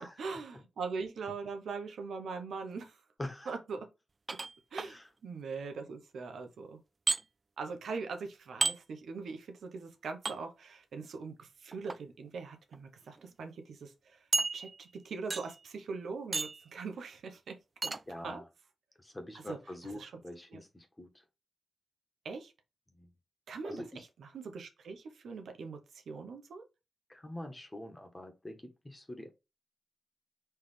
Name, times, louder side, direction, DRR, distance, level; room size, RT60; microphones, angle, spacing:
voice 1, 0.2-3.0 3.5-3.9 4.7-6.8 7.6-14.2 14.5-17.6 17.8-17.9 18.2-18.4 19.5-19.6 19.9-20.1 20.5-20.6 22.2-22.5 23.5-26.6, right 4 dB, 90° right, 1.0 m, -41 dB
voice 2, 3.2-3.5 4.8-5.1 18.1-18.4 19.0-21.1 22.9-23.1 23.6-24.0 27.1-28.6 28.8-29.3, left 1 dB, 20° left, 1.4 m, -44 dB
sound 1, 4.3-4.9 7.1-7.2 8.6-8.8 10.2-10.4 11.7-12.0 12.7-12.8 13.2-13.3 14.3-14.9 15.3-15.6 16.3-16.7 17.8-18.0, right 3 dB, 40° right, 0.3 m, -32 dB
4.4 x 3.3 x 3.4 m
cardioid pair, 65°, 0 cm